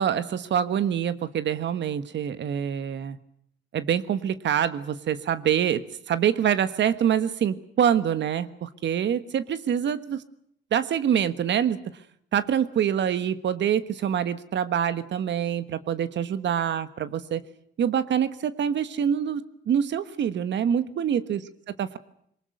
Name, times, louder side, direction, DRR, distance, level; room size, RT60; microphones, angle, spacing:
voice 1, 0.0-3.2 3.7-10.2 10.7-11.8 12.3-17.4 17.8-21.4 21.8-22.0, right 9 dB, 65° right, 14 dB, 1.4 m, -25 dB
23.0 x 19.5 x 9.4 m, 0.68 s
cardioid pair, 90°, 20 cm